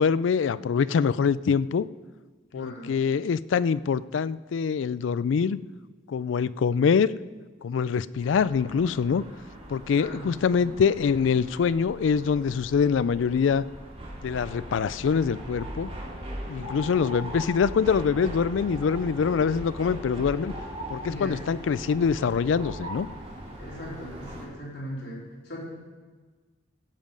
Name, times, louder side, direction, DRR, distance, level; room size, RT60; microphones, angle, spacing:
voice 1, 0.0-1.9 2.5-5.6 6.1-7.1 7.6-9.2 9.7-13.6 14.2-15.9 16.5-20.5 20.9-23.1, left 6 dB, 75° left, 18 dB, 0.3 m, -24 dB
voice 2, 2.5-2.9 9.9-10.3 10.6-10.8 16.7-16.9 20.1-20.2 21.0-21.6 23.6-25.8, equal, 55° left, -5 dB, 3.9 m, -39 dB
sound 1, 8.2-24.4, equal, 30° right, 2.3 m, -40 dB
16.0 x 7.5 x 5.3 m, 1.4 s
head